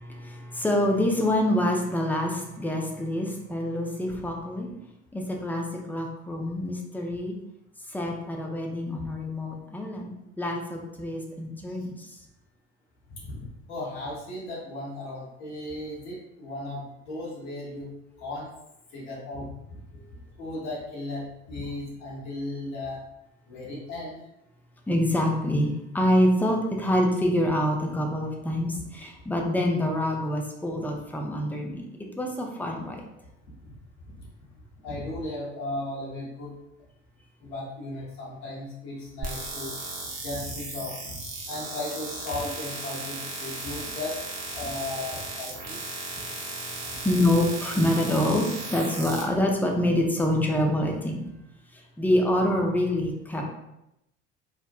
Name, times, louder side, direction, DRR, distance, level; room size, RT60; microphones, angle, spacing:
voice 1, 0.0-4.7 5.1-7.3 7.9-10.1 10.4-12.1 24.9-31.8 32.2-33.0 46.1-46.3 46.9-48.5 48.7-51.2 52.0-53.4, left 1 dB, 5° left, 0 dB, 0.4 m, -26 dB
voice 2, 13.1-13.4 13.7-17.9 18.2-18.5 18.9-19.8 20.4-23.0 23.5-24.1 33.6-33.7 34.2-34.3 34.8-36.5 37.4-39.7 40.2-41.2 41.4-44.2 44.5-45.8, left 2 dB, 70° left, -6 dB, 0.9 m, -36 dB
sound 1, 39.2-49.2, right 3 dB, 50° right, 0.8 m, -36 dB
2.6 x 2.1 x 2.3 m, 0.85 s
figure-of-eight pair, 55°, 33 cm